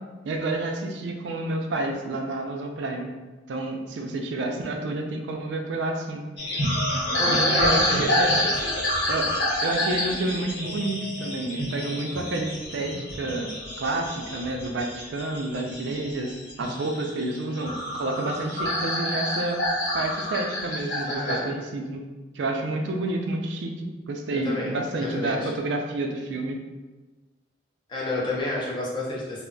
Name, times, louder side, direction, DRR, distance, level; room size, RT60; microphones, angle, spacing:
voice 1, 0.2-3.1 3.5-6.2 7.3-8.3 9.1-9.3 9.6-13.5 13.8-19.6 19.9-22.0 22.4-26.6, right 2 dB, 80° right, 3 dB, 0.4 m, -29 dB
sound 1, 6.4-21.4, left 1 dB, 65° left, 1.1 m, -28 dB
voice 2, 7.2-8.1 8.4-8.7 21.1-21.5 24.3-24.7 25.0-25.5 27.9-29.4, left 2 dB, 25° left, -4 dB, 0.5 m, -30 dB
2.2 x 2.0 x 3.7 m, 1.2 s
head